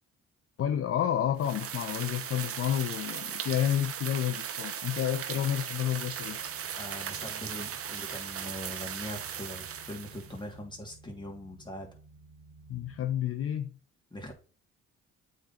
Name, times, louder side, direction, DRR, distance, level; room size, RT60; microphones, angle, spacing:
voice 1, 0.6-6.4 12.7-13.7, left 10 dB, 50° left, 0.6 m, -30 dB
sound 1, 1.4-10.4, right 8 dB, 50° right, 0.9 m, -38 dB
sound 2, 6.0-13.1, right 3 dB, 25° right, 1.3 m, -55 dB
voice 2, 6.7-11.9 14.1-14.3, left 1 dB, 15° left, 2.7 m, -42 dB
8.2 x 3.8 x 4.3 m
supercardioid pair, 65°, 29 cm